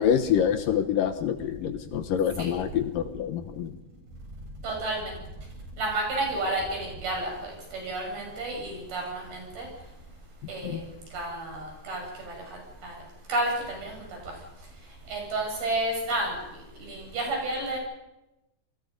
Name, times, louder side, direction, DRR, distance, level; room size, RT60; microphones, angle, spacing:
voice 1, 0.0-3.7 10.6-10.8, left 9 dB, 70° left, 9 dB, 2.5 m, -26 dB
voice 2, 4.6-5.0 5.8-9.7 10.5-10.8 11.1-12.3 12.8-13.0 13.3-14.1 15.1-16.3 16.8-17.8, right 2 dB, 70° right, 0 dB, 9.3 m, -31 dB
29.0 x 22.0 x 5.3 m, 0.96 s
omnidirectional pair, 4.5 m